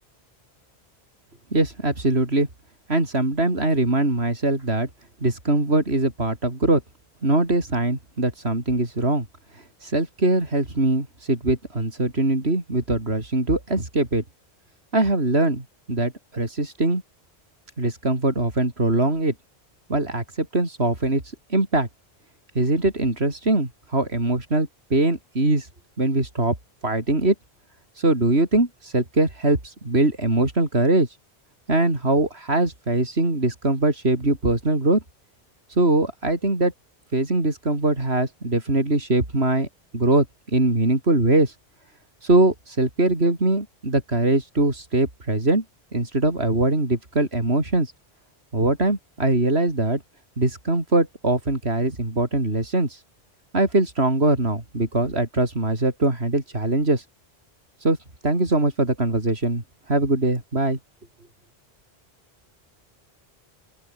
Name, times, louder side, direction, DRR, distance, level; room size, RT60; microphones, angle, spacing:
voice 1, 1.5-2.5 2.9-4.9 5.2-6.8 7.2-9.3 9.8-14.2 14.9-17.0 17.8-19.3 19.9-21.2 21.5-21.9 22.5-25.7 26.0-26.5 26.8-27.3 28.0-31.1 31.7-35.0 35.8-36.7 37.1-39.7 39.9-40.2 40.5-41.5 42.2-45.6 45.9-47.9 48.5-50.0 50.4-53.0 53.5-57.0 57.8-58.0 58.2-60.8, right 2 dB, 75° right, 5.1 m, -22 dB
open air
omnidirectional pair, 1.1 m